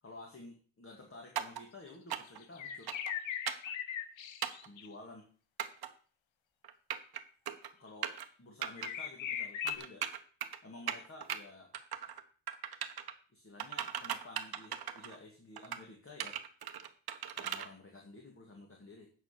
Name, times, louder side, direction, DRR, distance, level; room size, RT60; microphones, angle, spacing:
voice 1, 0.0-2.9 4.7-5.3 7.8-8.1 8.4-10.1 10.6-11.7 13.3-16.4 17.4-19.1, left 2 dB, 25° left, 1 dB, 2.0 m, -52 dB
sound 1, 1.4-1.6 2.1-2.4 2.9-3.1 3.5-3.7 4.4-4.7 5.6-5.9 6.6-7.2 7.5-7.7 8.0-8.3 8.6-8.9 9.7-10.6 10.9-11.4 11.7-12.2 12.5-13.1 13.6-15.2 15.6-15.8 16.2-17.7, right 9 dB, 50° right, 1.1 m, -38 dB
sound 2, 2.1-4.9 7.9-8.0 8.8-9.8, left 9 dB, 70° left, 1.2 m, -39 dB
9.0 x 6.0 x 6.7 m, 0.42 s
cardioid pair, 130°, 48 cm